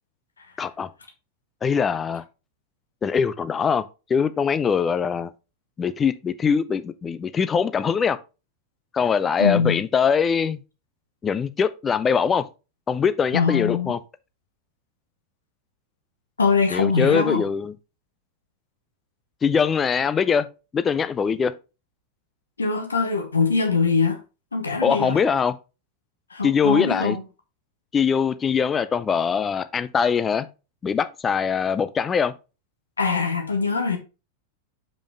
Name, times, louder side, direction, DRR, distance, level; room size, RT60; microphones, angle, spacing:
voice 1, 0.6-0.9 1.6-2.2 3.0-3.8 4.1-5.3 5.8-8.2 8.9-10.6 11.2-12.5 12.9-14.0 16.7-17.7 19.4-20.5 20.7-21.6 24.8-25.5 26.4-27.2 27.9-30.5 30.8-32.3, left 6 dB, 20° left, 0.5 m, -22 dB
voice 2, 9.4-9.8 13.3-13.9 16.4-17.4 22.6-24.2 24.5-25.2 26.3-27.2 33.0-34.0, left 4 dB, 75° left, 1.0 m, -22 dB
5.4 x 5.2 x 3.4 m
figure-of-eight pair, 90°, 0 cm